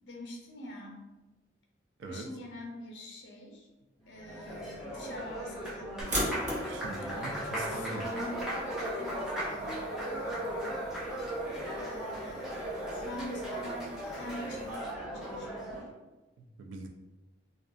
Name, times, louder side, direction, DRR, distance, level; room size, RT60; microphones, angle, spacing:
voice 1, 0.0-1.0 2.1-3.7 4.1-6.4 7.3-8.4 9.0-9.8 11.6-12.6 12.9-15.9, left 1 dB, 70° left, -1 dB, 0.6 m, -44 dB
Applause, 4.1-15.9, right 1 dB, ahead, 0.4 m, -37 dB
sound 1, 6.0-14.8, equal, 40° right, 0.7 m, -41 dB
voice 2, 6.6-8.0 16.4-16.9, right 3 dB, 75° right, 3 dB, 0.3 m, -42 dB
2.4 x 2.4 x 2.2 m, 1.1 s
head